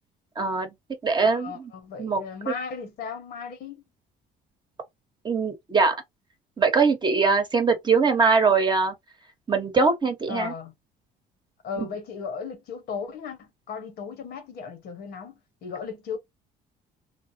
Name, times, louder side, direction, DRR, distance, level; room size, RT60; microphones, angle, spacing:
voice 1, 0.4-0.7 1.0-1.7 2.0-2.2 2.5-2.6 5.2-6.0 6.6-8.9 9.5-10.5, right 4 dB, 25° right, 1.0 m, -22 dB
voice 2, 1.2-3.8 10.3-10.7 11.6-16.2, left 6 dB, 70° left, 1.1 m, -36 dB
3.3 x 2.0 x 2.6 m
cardioid pair, 110°, 17 cm